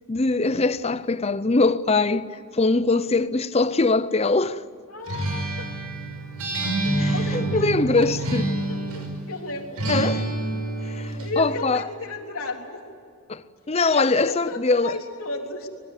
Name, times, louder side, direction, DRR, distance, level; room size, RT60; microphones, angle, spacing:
voice 1, 0.1-4.6 7.0-8.4 9.9-10.3 10.8-11.8 13.3-15.0, left 3 dB, 30° left, 0.6 m, -22 dB
voice 2, 4.9-5.7 7.1-8.0 8.5-10.1 10.8-12.8 13.9-15.7, left 3 dB, 75° left, 3.5 m, -34 dB
Acoustic guitar, 5.1-9.2 9.8-11.3, right 2 dB, 85° right, 5.8 m, -27 dB
25.5 x 22.0 x 8.2 m
head